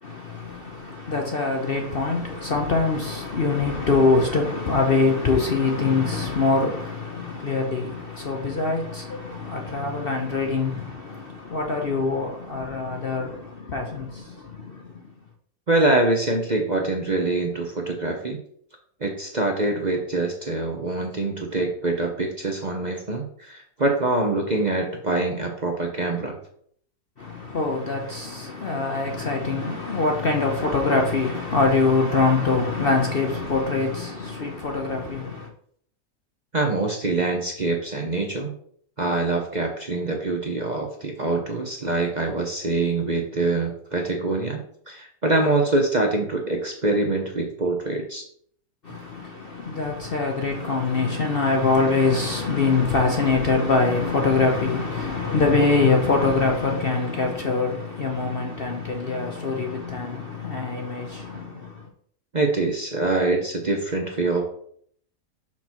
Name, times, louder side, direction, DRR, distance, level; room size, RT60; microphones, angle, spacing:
voice 1, 0.0-14.9 27.2-35.5 48.8-61.9, left 3 dB, 45° left, 0.8 m, -24 dB
voice 2, 15.7-18.4 19.0-26.4 36.5-38.5 39.0-44.6 44.9-48.2 62.3-64.4, right 2 dB, 35° right, 0.8 m, -24 dB
5.9 x 5.8 x 4.5 m
omnidirectional pair, 1.7 m